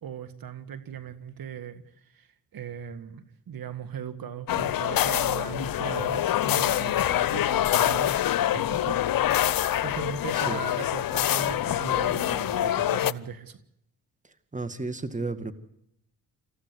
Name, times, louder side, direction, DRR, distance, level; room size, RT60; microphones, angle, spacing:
voice 1, 0.0-8.2 8.5-9.0 9.3-13.6, right 8 dB, 55° right, 9 dB, 1.9 m, -38 dB
sound 1, 4.5-13.1, left 12 dB, 55° left, 0.9 m, -25 dB
voice 2, 14.2-15.5, right 3 dB, 20° right, 11 dB, 2.1 m, -33 dB
27.0 x 15.0 x 8.2 m, 0.77 s
hypercardioid pair, 50°, 41 cm